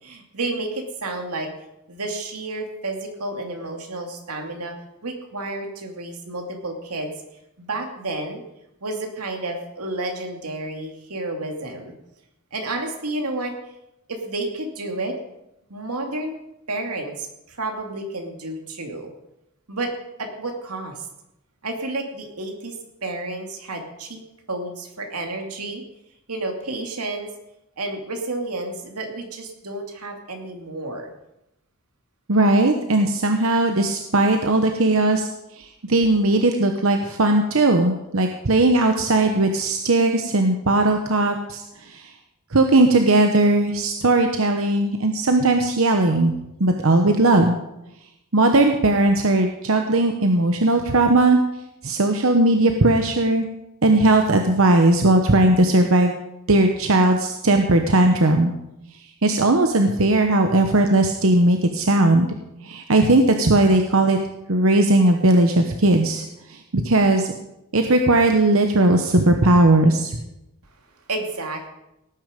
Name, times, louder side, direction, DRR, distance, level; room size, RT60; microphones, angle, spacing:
voice 1, 0.0-1.5 1.9-4.7 5.0-7.1 7.6-8.4 8.8-11.9 12.5-13.6 14.1-15.2 15.7-16.3 16.7-19.1 19.7-19.9 20.2-21.1 21.6-22.8 23.0-24.2 24.5-25.8 26.3-27.3 27.8-31.1 71.1-71.7, right 2 dB, 90° right, 3 dB, 2.5 m, -30 dB
voice 2, 32.3-35.3 35.6-42.1 42.5-46.3 46.6-47.6 48.3-51.4 51.8-53.5 53.8-56.1 56.5-58.5 59.2-62.3 62.6-64.2 64.5-66.2 66.5-67.3 67.7-70.2, right 2 dB, 65° right, 5 dB, 1.0 m, -18 dB
17.5 x 9.4 x 5.2 m, 0.88 s
head